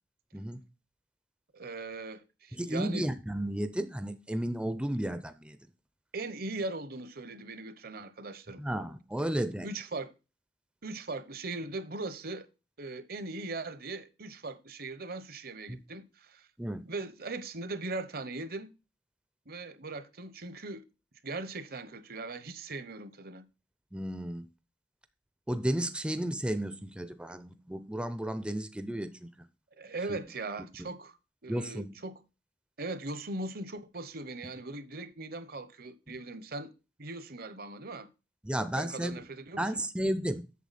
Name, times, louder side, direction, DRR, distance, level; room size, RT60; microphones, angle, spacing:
voice 1, 1.5-3.1 6.1-8.6 9.6-10.1 10.8-12.5 12.8-16.5 16.8-18.7 19.5-20.8 21.2-23.4 29.8-31.2 31.4-32.2 32.8-36.7 37.0-38.1 38.8-39.6, right 2 dB, 55° right, 0.9 m, -39 dB
voice 2, 2.5-5.6 8.6-9.7 15.7-15.8 16.6-16.8 23.9-24.5 25.5-29.3 30.1-30.2 30.8-30.9 31.5-32.0 36.1-36.2 38.4-39.2 39.6-40.4, right 1 dB, 5° right, 0.5 m, -33 dB
8.4 x 6.9 x 4.1 m
head